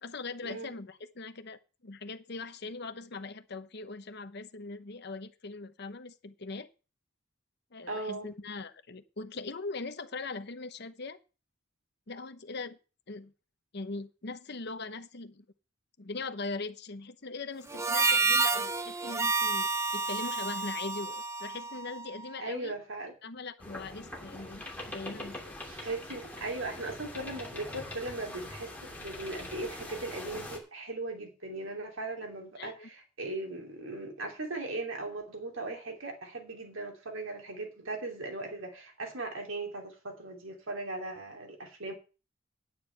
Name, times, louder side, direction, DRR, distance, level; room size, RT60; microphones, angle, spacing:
voice 1, 0.0-6.7 7.7-11.2 12.1-12.8 13.1-13.3 13.7-15.4 16.0-22.8 23.2-25.6 32.6-32.9, left 3 dB, 55° left, 0.9 m, -41 dB
voice 2, 7.9-8.3 22.4-23.1 25.6-41.9, right 2 dB, 75° right, 2.9 m, -38 dB
Harmonica, 17.7-22.3, right 4 dB, 15° right, 0.5 m, -30 dB
sound 1, 23.6-30.6, left 1 dB, 10° left, 2.7 m, -43 dB
9.5 x 9.5 x 5.7 m
head